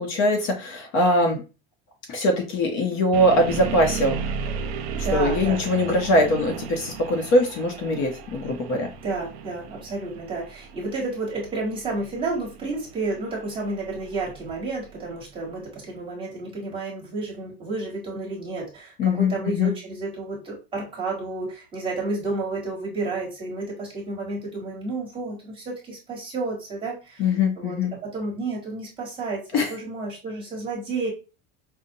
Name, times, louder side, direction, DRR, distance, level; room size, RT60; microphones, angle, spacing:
voice 1, 0.0-1.4 2.1-4.2 4.9-8.9 19.0-19.7 27.2-27.9 29.5-29.7, left 1 dB, 40° left, 2 dB, 0.7 m, -22 dB
sound 1, 3.1-15.1, right 6 dB, 85° right, 0.7 m, -35 dB
voice 2, 5.0-5.6 9.0-29.4 29.7-31.1, right 3 dB, 15° right, -4 dB, 1.3 m, -31 dB
5.2 x 2.1 x 2.7 m, 0.32 s
cardioid pair, 165°, 31 cm